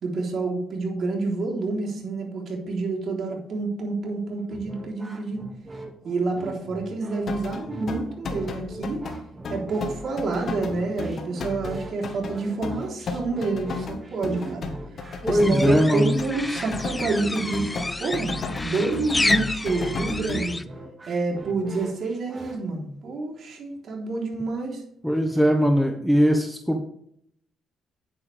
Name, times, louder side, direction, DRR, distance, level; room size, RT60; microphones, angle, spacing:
voice 1, 0.0-5.5 6.0-9.0 9.5-14.7 15.3-17.7 18.0-18.3 18.6-20.5 21.1-24.8, right 3 dB, 60° right, -1 dB, 3.6 m, -28 dB
sound 1, 4.5-22.6, right 2 dB, 30° right, 2.0 m, -42 dB
sound 2, 7.3-20.4, left 3 dB, 55° left, 1.4 m, -33 dB
voice 2, 15.2-16.2 25.0-26.8, equal, ahead, 4 dB, 1.2 m, -20 dB
sound 3, 15.4-20.6, left 2 dB, 15° left, 0.6 m, -30 dB
9.8 x 8.8 x 3.4 m, 0.68 s
cardioid pair, 90°, 0 cm